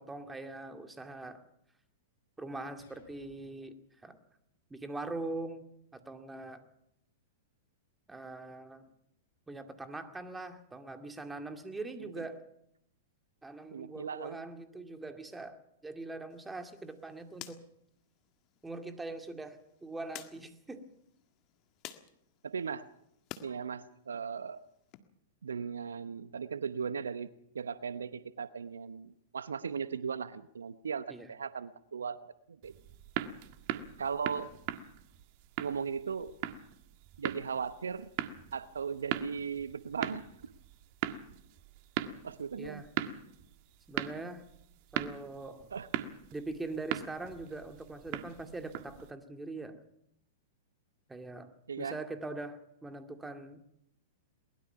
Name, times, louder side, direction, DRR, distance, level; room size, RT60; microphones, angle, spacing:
voice 1, 0.0-1.4 2.4-3.8 4.0-4.2 4.7-6.6 8.1-8.8 9.5-12.4 13.4-15.6 15.8-17.6 18.6-20.9 31.1-31.3 42.6-42.9 43.9-44.4 44.9-45.7 46.3-49.8 51.1-51.5 51.8-53.6, right 2 dB, 10° right, 6 dB, 2.3 m, -42 dB
sound 1, 2.8-3.8, left 7 dB, 65° left, 5.1 m, -63 dB
voice 2, 13.7-14.5 22.4-22.9 23.4-24.6 25.4-32.7 34.0-34.5 35.6-36.3 37.2-38.1 38.5-40.5 42.2-42.8 45.7-45.9 51.7-52.0, right 6 dB, 75° right, 15 dB, 0.8 m, -37 dB
sound 2, 16.3-23.5 23.9-25.0, left 14 dB, 40° left, 1.7 m, -53 dB
sound 3, 32.6-49.1, right 11 dB, 45° right, 1.6 m, -40 dB
22.5 x 20.5 x 5.9 m, 0.76 s
figure-of-eight pair, 105°, 0 cm